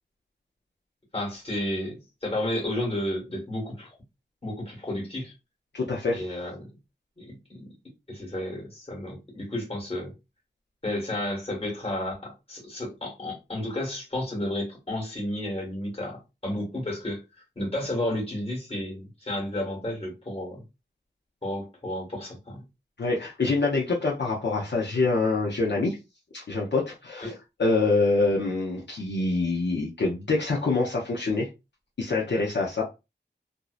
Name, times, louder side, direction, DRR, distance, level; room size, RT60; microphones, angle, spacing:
voice 1, 1.1-3.9 4.4-5.3 6.1-6.7 7.2-7.7 8.1-10.1 10.8-17.2 17.5-20.6 21.4-22.6 27.2-27.4, left 1 dB, 30° left, 1.3 m, -32 dB
voice 2, 5.7-6.2 23.0-26.0 26.3-27.3 27.6-31.5 32.0-32.8, left 3 dB, 65° left, 0.6 m, -25 dB
2.6 x 2.0 x 2.4 m
wide cardioid pair, 70°, 20 cm